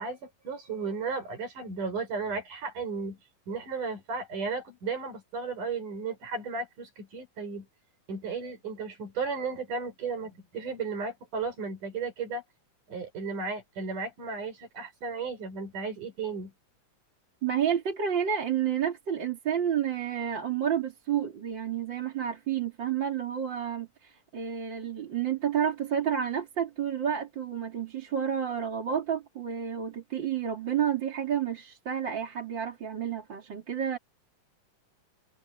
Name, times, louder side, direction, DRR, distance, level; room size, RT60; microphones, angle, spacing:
voice 1, 0.0-3.2 3.5-7.7 8.1-12.4 12.9-16.5, right 4 dB, 65° right, 7.8 m, -34 dB
voice 2, 17.4-34.0, right 8 dB, 35° right, 3.1 m, -30 dB
omnidirectional pair, 3.8 m